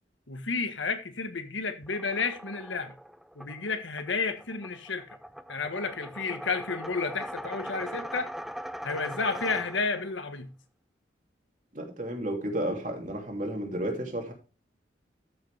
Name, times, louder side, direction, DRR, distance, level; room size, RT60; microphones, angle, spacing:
voice 1, 0.3-2.9 3.4-5.2 5.5-8.3 8.8-10.5, left 4 dB, 90° left, 1.5 m, -31 dB
sound 1, 1.8-10.1, equal, ahead, 0.4 m, -41 dB
voice 2, 11.7-14.3, right 1 dB, 45° right, 3.0 m, -32 dB
13.5 x 6.7 x 3.4 m
head